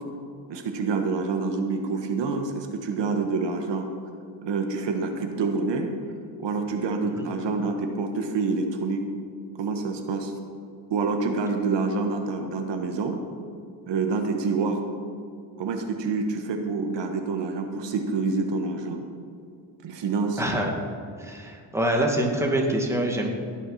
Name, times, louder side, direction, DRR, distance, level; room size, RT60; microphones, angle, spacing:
voice 1, 0.5-3.9 4.4-5.9 6.4-9.0 9.6-10.3 10.9-13.2 13.9-14.8 15.6-19.0 19.8-20.4, right 4 dB, 65° right, 4 dB, 1.4 m, -27 dB
voice 2, 20.4-20.7 21.2-23.3, right 1 dB, 5° right, 0 dB, 2.1 m, -25 dB
18.0 x 7.0 x 5.7 m, 2.5 s
cardioid pair, 105°, 46 cm